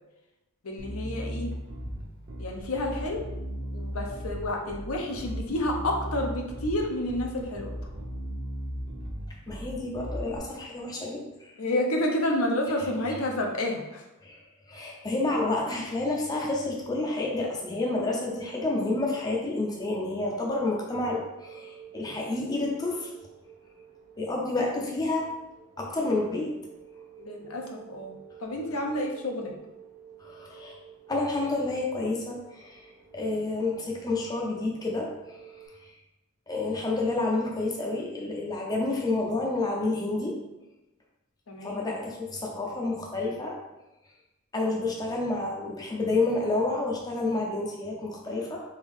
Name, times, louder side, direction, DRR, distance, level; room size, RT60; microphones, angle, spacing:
voice 1, 0.6-1.5 2.4-3.2 3.7-7.7 11.6-14.1 27.2-29.5 41.5-41.8, left 1 dB, 70° left, 2 dB, 0.7 m, -30 dB
Bass guitar, 0.8-10.4, equal, 45° right, 1.0 m, -36 dB
voice 2, 9.5-11.5 14.2-23.1 24.2-25.3 25.8-26.5 30.2-30.8 31.1-35.4 35.8-35.9 36.5-40.4 41.6-43.6 44.5-48.6, left 2 dB, 15° left, -1 dB, 0.6 m, -29 dB
sound 1, 18.0-35.7, right 8 dB, 75° right, 0.9 m, -50 dB
3.5 x 3.5 x 3.6 m, 0.98 s
head